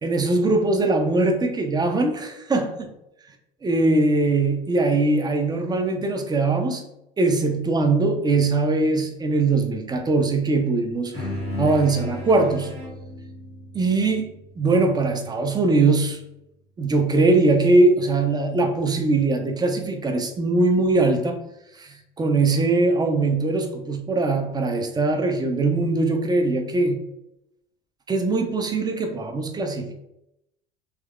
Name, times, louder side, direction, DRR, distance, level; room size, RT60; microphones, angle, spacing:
voice 1, 0.0-2.7 3.6-6.8 7.2-11.1 11.6-12.7 13.7-16.2 16.8-21.4 21.8-27.0 28.1-29.9, right 3 dB, 15° right, 4 dB, 0.4 m, -21 dB
sound 1, 11.1-15.9, left 1 dB, 85° right, 1.3 m, -35 dB
3.5 x 2.8 x 2.2 m, 0.83 s
figure-of-eight pair, 70°, 31 cm